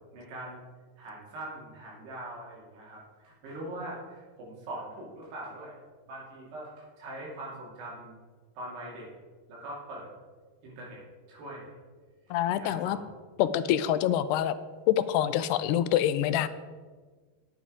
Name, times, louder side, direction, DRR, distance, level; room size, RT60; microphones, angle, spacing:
voice 1, 0.1-0.6 1.0-5.8 6.1-8.2 8.6-9.1 9.5-10.1 10.6-11.0 11.3-11.7 12.5-13.0, right 1 dB, 80° right, -4 dB, 4.4 m, -42 dB
voice 2, 12.3-13.0 13.4-14.6 14.9-16.5, left 11 dB, 85° left, 13 dB, 2.6 m, -26 dB
10.0 x 9.3 x 4.9 m, 1.4 s
omnidirectional pair, 4.7 m